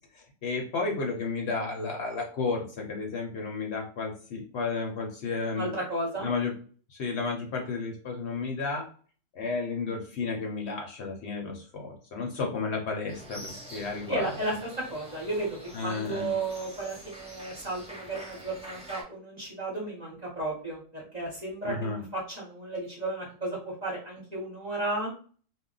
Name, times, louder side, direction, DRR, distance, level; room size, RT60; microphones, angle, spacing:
voice 1, 0.1-5.7 6.2-6.5 6.9-8.9 9.3-14.3 15.7-16.3 21.6-22.0, left 4 dB, 60° left, 1 dB, 0.8 m, -32 dB
voice 2, 5.5-6.3 14.1-14.5 14.9-15.6 15.8-25.1, right 2 dB, 35° right, -3 dB, 0.8 m, -33 dB
sound 1, 13.1-19.0, equal, 5° right, 0.7 m, -46 dB
2.2 x 2.1 x 3.8 m, 0.42 s
omnidirectional pair, 1.4 m